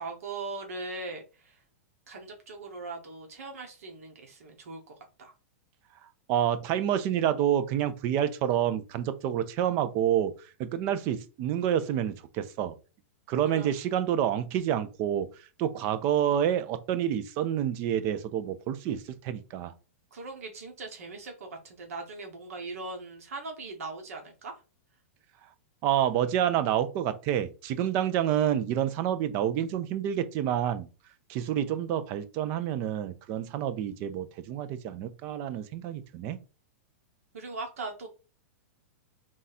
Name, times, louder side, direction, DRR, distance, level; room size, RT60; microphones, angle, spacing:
voice 1, 0.0-1.6 2.1-4.8 5.2-5.3 13.4-13.7 20.1-24.5 37.3-38.1, right 3 dB, 85° right, 1.3 m, -40 dB
voice 2, 6.3-10.3 10.6-12.7 13.3-15.3 15.6-19.7 25.8-30.9 31.3-36.4, right 10 dB, 25° right, 0.4 m, -28 dB
3.6 x 2.7 x 4.1 m
supercardioid pair, 170°, 8 cm